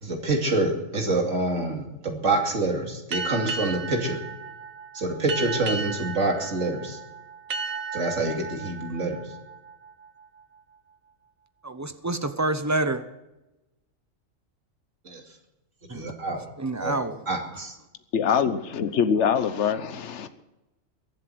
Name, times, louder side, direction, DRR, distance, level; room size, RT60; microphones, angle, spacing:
voice 1, 0.0-4.2 4.9-7.0 7.9-9.2 15.0-15.2 15.9-16.5 16.8-17.8, right 2 dB, 65° right, 2 dB, 3.0 m, -27 dB
sound 1, 3.1-10.4, right 4 dB, 85° right, 1.5 m, -35 dB
voice 2, 11.6-13.0 15.9-16.1 16.6-17.2, right 2 dB, 15° right, 10 dB, 0.7 m, -27 dB
voice 3, 18.1-20.3, left 7 dB, 60° left, 11 dB, 1.3 m, -24 dB
22.5 x 7.7 x 7.9 m, 0.99 s
omnidirectional pair, 1.4 m